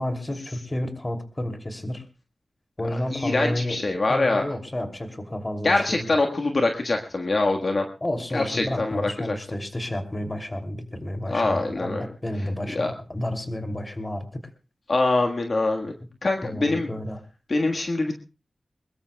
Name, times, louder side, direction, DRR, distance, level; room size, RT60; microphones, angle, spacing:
voice 1, 0.0-2.0 2.8-6.1 8.0-14.4 16.4-17.2, left 1 dB, 20° left, 6 dB, 2.8 m, -31 dB
voice 2, 3.1-4.4 5.6-7.9 8.3-9.4 11.3-12.1 12.7-12.9 14.9-15.9 16.2-16.9 17.5-18.2, left 2 dB, 50° left, 2 dB, 1.5 m, -24 dB
22.5 x 21.0 x 2.3 m, 0.31 s
wide cardioid pair, 95°, 0 cm